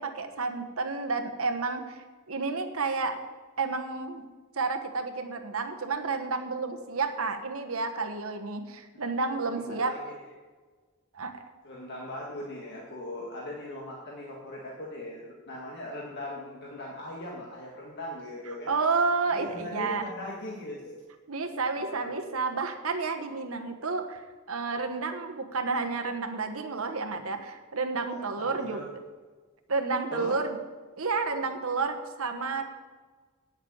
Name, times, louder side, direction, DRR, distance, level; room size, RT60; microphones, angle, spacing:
voice 1, 0.0-3.2 3.6-4.2 4.5-9.9 11.1-11.4 18.7-20.1 21.3-24.2 24.5-28.9 29.7-30.6 31.0-32.6, right 4 dB, 70° right, 5 dB, 1.2 m, -30 dB
voice 2, 9.5-10.1 11.6-18.7 19.3-20.9 21.7-22.2 28.1-28.9 30.1-30.4, left 1 dB, 50° left, -3 dB, 1.6 m, -39 dB
9.3 x 6.6 x 8.5 m, 1.4 s
head